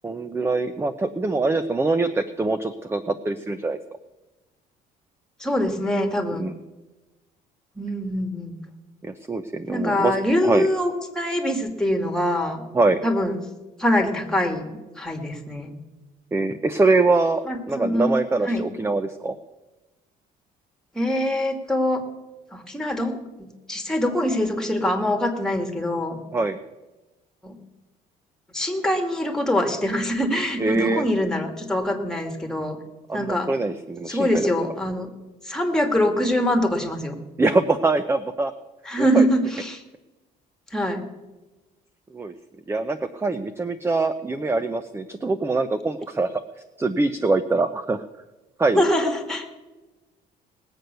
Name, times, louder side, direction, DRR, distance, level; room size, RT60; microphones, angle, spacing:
voice 1, 0.0-3.8 6.3-6.6 9.0-10.2 10.4-10.7 12.7-13.0 16.3-19.4 26.3-26.6 30.6-31.1 33.1-34.4 37.4-38.5 39.0-39.3 42.1-42.3 42.7-46.4 46.8-48.0 48.6-48.9, right 3 dB, 15° right, 11 dB, 0.7 m, -23 dB
voice 2, 5.4-6.5 7.8-8.5 9.7-12.6 13.0-13.3 13.8-15.8 17.5-18.7 20.9-22.0 22.5-26.2 27.4-27.6 28.5-32.8 33.1-33.5 34.1-35.1 35.5-37.1 38.9-39.8 40.7-41.1 48.8-49.5, left 1 dB, 5° left, 3 dB, 2.3 m, -24 dB
19.5 x 7.9 x 6.8 m, 1.1 s
cardioid pair, 110°, 17 cm